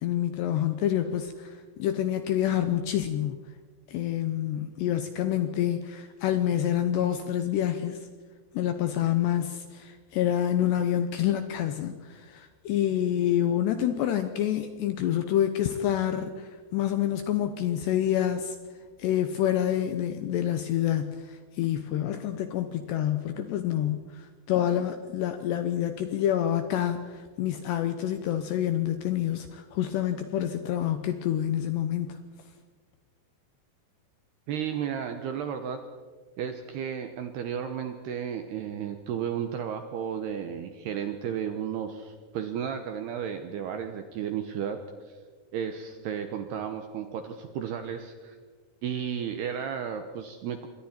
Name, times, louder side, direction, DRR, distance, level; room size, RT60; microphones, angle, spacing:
voice 1, 0.0-3.4 3.9-8.1 8.5-18.6 19.0-32.2, left 11 dB, 75° left, 8 dB, 2.6 m, -27 dB
voice 2, 34.5-35.8 36.4-44.8 45.1-45.2 45.5-48.4 48.8-50.7, right 8 dB, 75° right, 7 dB, 2.5 m, -33 dB
27.0 x 23.0 x 4.4 m, 1.5 s
omnidirectional pair, 5.9 m